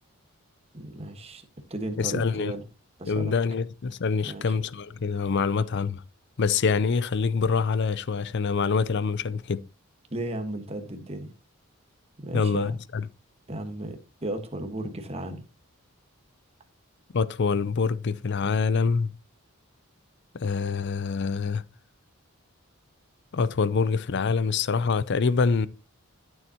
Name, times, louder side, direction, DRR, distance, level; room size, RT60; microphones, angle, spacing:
voice 1, 0.7-2.6 3.0-3.3 4.2-4.6 10.1-11.3 12.2-12.8 13.5-15.4, right 1 dB, 25° right, 1.4 m, -35 dB
voice 2, 2.0-2.5 3.1-6.0 6.4-9.6 12.3-13.1 17.1-19.1 20.3-21.6 23.3-25.7, left 5 dB, 50° left, 0.5 m, -25 dB
12.5 x 7.1 x 2.9 m
head